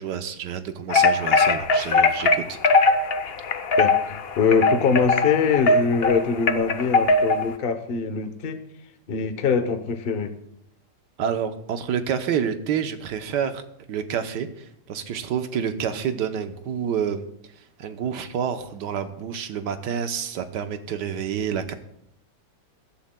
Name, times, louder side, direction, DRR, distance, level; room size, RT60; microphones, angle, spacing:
voice 1, 0.0-2.6 11.2-13.6 13.9-17.2 17.8-21.7, right 8 dB, 85° right, 8 dB, 1.5 m, -28 dB
sound 1, 0.9-7.5, left 3 dB, 65° left, 0.6 m, -20 dB
voice 2, 3.8-8.6 9.1-10.3, left 5 dB, 40° left, 8 dB, 0.9 m, -23 dB
22.5 x 11.5 x 2.2 m, 0.75 s
omnidirectional pair, 1.8 m